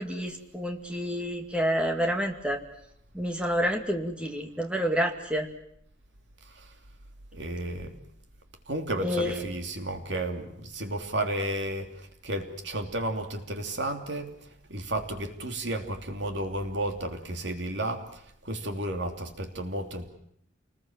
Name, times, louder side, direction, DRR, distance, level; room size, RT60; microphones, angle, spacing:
voice 1, 0.0-2.6 3.1-5.5 9.0-9.4, equal, 5° right, 3 dB, 2.3 m, -29 dB
voice 2, 6.4-6.7 7.3-8.0 8.7-20.1, right 1 dB, 60° right, 5 dB, 3.0 m, -33 dB
28.0 x 20.5 x 7.4 m, 0.71 s
head